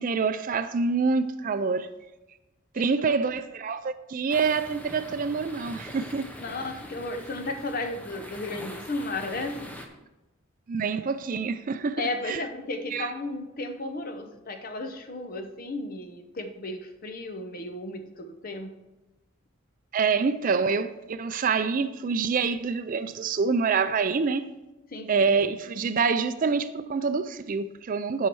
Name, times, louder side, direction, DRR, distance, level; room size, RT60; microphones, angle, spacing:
voice 1, 0.0-1.9 2.7-6.3 10.7-12.4 12.9-13.1 19.9-24.5 25.1-28.3, right 5 dB, 40° right, 0.4 m, -26 dB
voice 2, 2.8-3.2 6.4-9.8 12.0-18.8 24.9-25.3, left 2 dB, 45° left, 0.8 m, -34 dB
sound 1, 4.3-9.9, equal, 5° left, 0.7 m, -43 dB
9.0 x 5.6 x 4.6 m
head